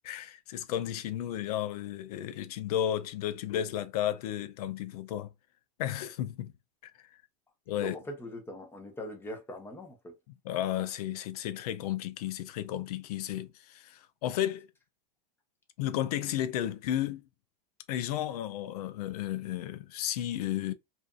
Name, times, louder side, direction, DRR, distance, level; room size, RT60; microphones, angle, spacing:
voice 1, 0.0-5.3 5.8-6.5 6.8-6.9 7.7-8.0 10.4-14.7 15.8-17.2 17.9-20.7, left 11 dB, 75° left, 0.5 m, -33 dB
voice 2, 7.8-10.1, equal, 10° left, 0.9 m, -42 dB
2.6 x 2.5 x 2.3 m
hypercardioid pair, 115°, 20 cm